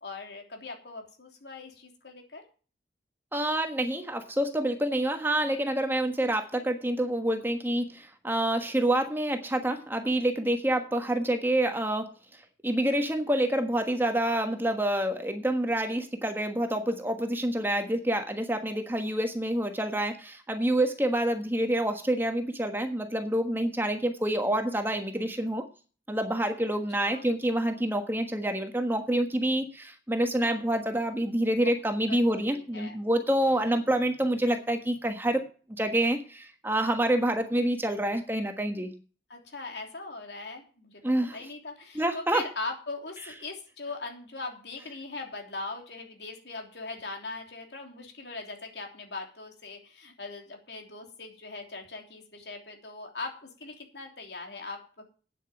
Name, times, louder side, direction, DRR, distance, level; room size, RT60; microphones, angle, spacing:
voice 1, 0.0-2.4 27.0-27.2 31.6-31.7 32.1-32.9 39.3-41.0 41.3-55.0, left 3 dB, 75° left, 3 dB, 3.2 m, -40 dB
voice 2, 3.3-12.1 12.6-25.6 26.1-35.4 35.8-38.9 41.0-41.4 41.9-42.4, right 1 dB, 10° right, 5 dB, 1.3 m, -27 dB
9.2 x 8.3 x 7.1 m, 0.37 s
head